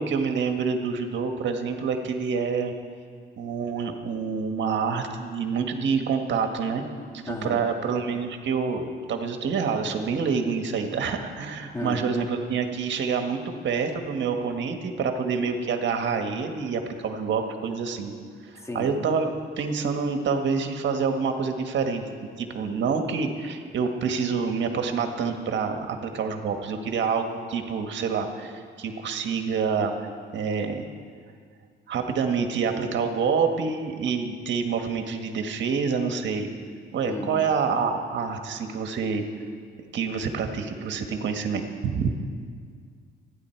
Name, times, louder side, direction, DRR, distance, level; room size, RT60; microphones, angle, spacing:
voice 1, 0.0-2.7 3.4-6.8 7.1-18.1 18.4-22.0 22.4-30.9 31.9-36.5 36.9-39.2 39.9-42.1, right 5 dB, 70° right, 5 dB, 1.6 m, -27 dB
voice 2, 7.3-7.6 11.7-12.1 18.6-18.9 37.1-37.3, left 1 dB, 15° left, 3 dB, 2.0 m, -33 dB
27.5 x 10.5 x 4.6 m, 2.1 s
cardioid pair, 90°, 20 cm